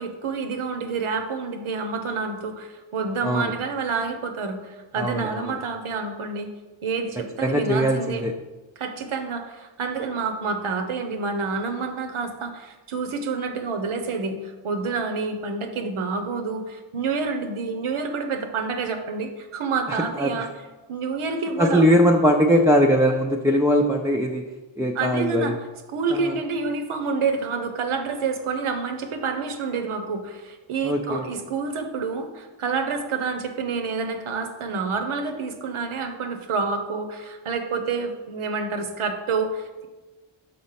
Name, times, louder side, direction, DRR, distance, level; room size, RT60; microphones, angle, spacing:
voice 1, 0.0-6.5 6.8-8.3 8.8-20.5 20.9-21.9 24.9-25.6 25.9-39.9, right 4 dB, 85° right, 6 dB, 0.9 m, -28 dB
voice 2, 5.0-5.5 7.4-8.3 20.2-20.3 21.6-24.4 24.8-25.6 26.1-26.3 30.8-31.2, equal, 5° right, 1 dB, 0.3 m, -20 dB
5.2 x 4.1 x 5.7 m, 1.2 s
wide cardioid pair, 90°, 49 cm